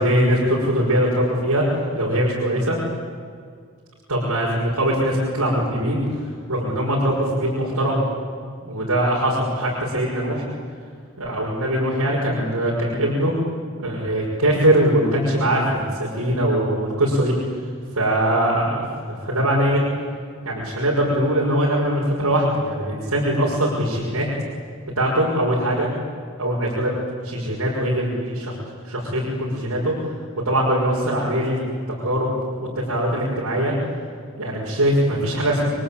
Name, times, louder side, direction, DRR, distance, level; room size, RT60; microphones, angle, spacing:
voice 1, 0.0-1.7 1.9-2.8 4.1-6.0 6.5-8.0 8.6-10.4 11.2-13.3 13.8-17.3 17.9-18.8 19.1-19.8 20.4-24.3 25.0-25.9 26.4-26.9 27.2-28.5 28.8-29.9 30.4-31.6 31.9-32.3 32.5-33.7 34.4-35.7, right 1 dB, 85° right, -4 dB, 6.1 m, -21 dB
30.0 x 22.5 x 8.8 m, 2.1 s
head